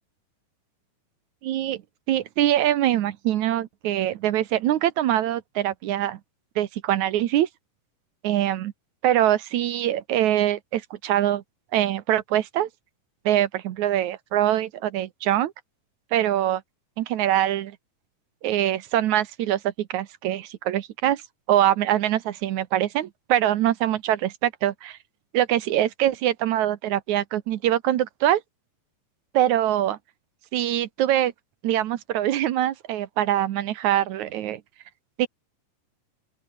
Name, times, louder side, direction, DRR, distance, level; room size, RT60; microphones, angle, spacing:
voice 1, 1.4-1.8 2.1-6.2 6.6-7.5 8.2-8.7 9.0-11.4 11.7-12.7 13.3-15.5 16.1-16.6 17.0-17.8 18.4-21.2 21.5-25.0 25.3-28.4 29.3-30.0 30.5-31.3 31.6-34.6 35.2-35.3, right 12 dB, 70° right, 2.2 m, -23 dB
open air
omnidirectional pair, 3.8 m